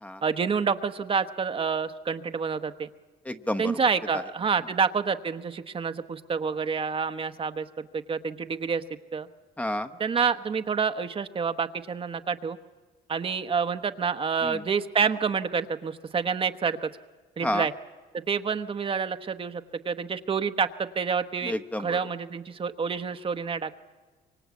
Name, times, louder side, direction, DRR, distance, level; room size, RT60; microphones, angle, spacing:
voice 1, 0.2-2.9 3.6-8.8 9.1-9.3 10.0-12.6 13.1-16.9 17.4-17.7 18.1-23.7, right 6 dB, 30° right, 9 dB, 1.1 m, -28 dB
voice 2, 3.2-3.7 4.1-4.2 9.6-9.9 14.4-14.6 17.4-17.7 21.4-22.0, left 1 dB, 10° left, 8 dB, 1.0 m, -30 dB
25.0 x 24.0 x 8.4 m, 1.3 s
cardioid pair, 110°, 17 cm